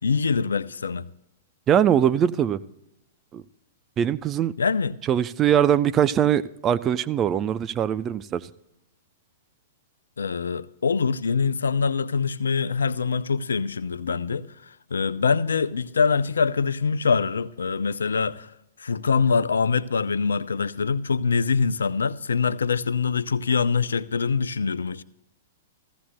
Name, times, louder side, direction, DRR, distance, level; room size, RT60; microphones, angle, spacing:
voice 1, 0.0-1.1 4.6-4.9 10.2-14.5 14.9-18.5 18.8-25.0, left 5 dB, 75° left, 0.4 m, -24 dB
voice 2, 1.7-2.6 3.3-3.4 4.0-4.5 5.1-8.5, right 9 dB, 25° right, 0.4 m, -22 dB
15.5 x 15.0 x 2.2 m
figure-of-eight pair, 110°, 0 cm